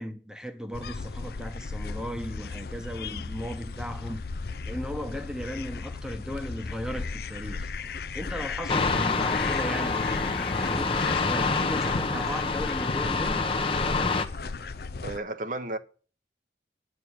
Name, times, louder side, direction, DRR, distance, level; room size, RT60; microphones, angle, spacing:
voice 1, 0.0-4.2 4.7-7.7 8.1-13.5, equal, 5° right, 1.0 m, -37 dB
sound 1, 0.7-15.2, left 4 dB, 55° left, 0.5 m, -36 dB
sound 2, 8.7-14.3, left 4 dB, 30° left, 0.9 m, -27 dB
voice 2, 15.0-15.8, right 2 dB, 45° right, 0.9 m, -33 dB
9.9 x 6.3 x 8.2 m
head